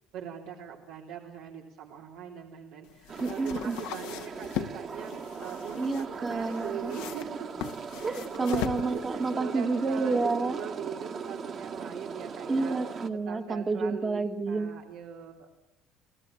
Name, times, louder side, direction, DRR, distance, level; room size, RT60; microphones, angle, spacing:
voice 1, 0.1-7.7 8.0-12.8 13.2-15.5, right 8 dB, 85° right, -1 dB, 3.3 m, -41 dB
sound 1, 2.8-9.3, left 13 dB, 90° left, 1.3 m, -39 dB
sound 2, 3.1-13.1, right 5 dB, 40° right, 1.6 m, -39 dB
voice 2, 3.2-3.8 5.8-7.0 7.6-7.7 8.0-10.6 12.5-14.7, right 3 dB, 20° right, 8 dB, 1.3 m, -29 dB
29.5 x 18.5 x 7.5 m, 0.83 s
cardioid pair, 145°, 0 cm